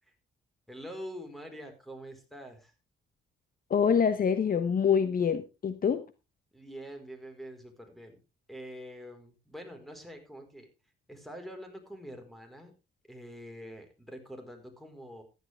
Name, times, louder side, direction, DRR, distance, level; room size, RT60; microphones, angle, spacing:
voice 1, 0.7-2.7 6.5-8.2 8.5-10.7 11.1-12.7 13.1-15.2, equal, ahead, 5 dB, 4.5 m, -45 dB
voice 2, 3.7-6.0, left 7 dB, 45° left, 11 dB, 1.1 m, -25 dB
14.5 x 11.0 x 3.5 m, 0.28 s
cardioid pair, 90°, 20 cm